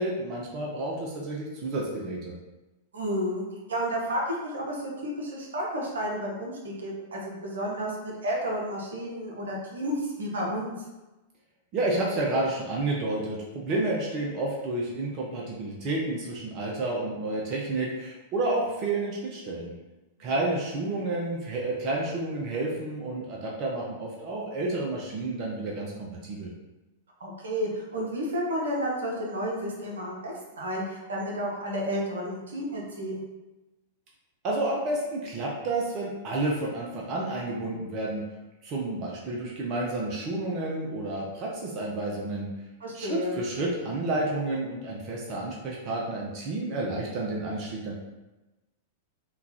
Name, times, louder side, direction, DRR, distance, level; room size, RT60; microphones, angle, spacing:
voice 1, 0.0-2.3 11.7-19.7 20.2-26.5 34.4-38.2 38.6-42.5 42.9-48.0, right 2 dB, 40° right, -3 dB, 0.6 m, -30 dB
voice 2, 2.9-10.7 20.2-20.4 27.2-33.2 42.8-43.4, equal, 70° right, -2 dB, 0.8 m, -31 dB
3.7 x 2.3 x 2.8 m, 1.1 s
figure-of-eight pair, 100°, 0 cm